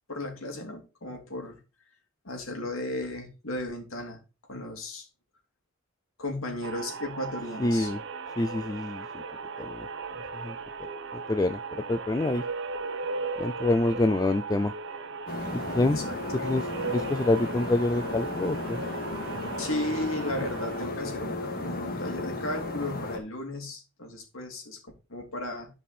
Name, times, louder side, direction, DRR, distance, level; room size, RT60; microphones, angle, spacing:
voice 1, 0.1-1.6 2.2-4.2 4.5-5.1 6.2-7.9 15.9-16.5 19.6-24.8 25.1-25.7, left 1 dB, 80° left, 3 dB, 3.0 m, -35 dB
sound 1, 6.6-20.9, right 4 dB, 60° right, 0.9 m, -37 dB
voice 2, 7.6-8.0 8.4-9.0 9.6-9.8 10.4-10.5 11.3-11.6 11.9-12.4 13.4-14.7 15.7-16.0 16.4-16.6 16.9-18.8, left 2 dB, 20° left, 11 dB, 0.4 m, -26 dB
sound 2, 15.3-23.2, left 2 dB, 45° left, 1.8 m, -34 dB
11.0 x 5.4 x 4.2 m, 0.30 s
head